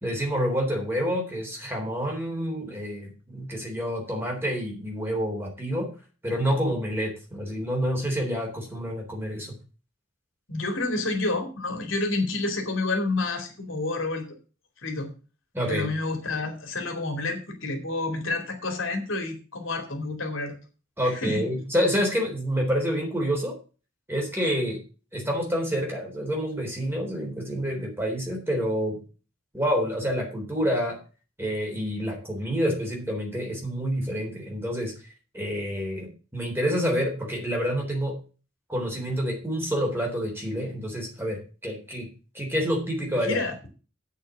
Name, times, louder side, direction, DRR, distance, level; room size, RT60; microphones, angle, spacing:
voice 1, 0.0-5.9 6.2-9.5 15.5-15.9 21.0-23.6 24.1-24.8 25.1-29.0 29.5-31.0 31.4-34.9 35.3-38.2 38.7-42.1 42.3-43.4, equal, 10° right, 0 dB, 3.7 m, -28 dB
voice 2, 10.5-14.2 14.8-15.1 15.7-20.6 21.0-21.4 43.1-43.5, left 2 dB, 70° left, 4 dB, 2.7 m, -29 dB
8.5 x 6.4 x 7.2 m, 0.35 s
head